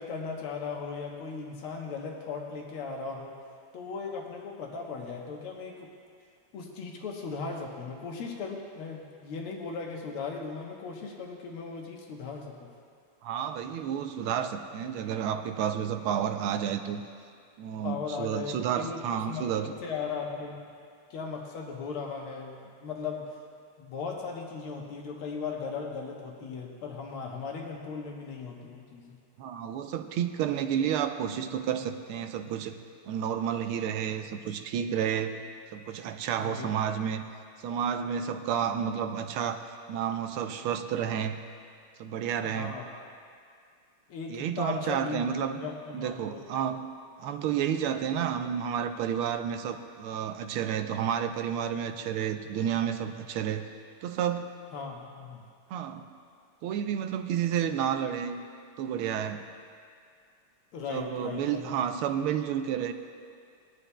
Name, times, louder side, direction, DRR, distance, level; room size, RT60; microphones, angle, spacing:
voice 1, 0.0-3.3 3.7-5.9 6.5-12.7 17.8-20.6 21.1-23.3 23.8-29.2 36.4-36.7 42.4-42.9 44.1-45.3 45.5-46.5 54.7-55.4 60.7-61.7, left 5 dB, 85° left, 0 dB, 2.0 m, -37 dB
voice 2, 13.2-17.0 17.6-19.8 29.4-32.8 33.1-35.4 35.7-37.2 37.6-39.6 39.9-41.4 42.0-42.7 44.3-45.6 45.9-46.9 47.2-53.7 54.0-54.5 55.7-56.1 56.6-58.4 58.8-59.4 60.9-62.9, right 8 dB, 90° right, 7 dB, 1.5 m, -30 dB
19.5 x 11.5 x 2.2 m, 2.2 s
omnidirectional pair, 2.3 m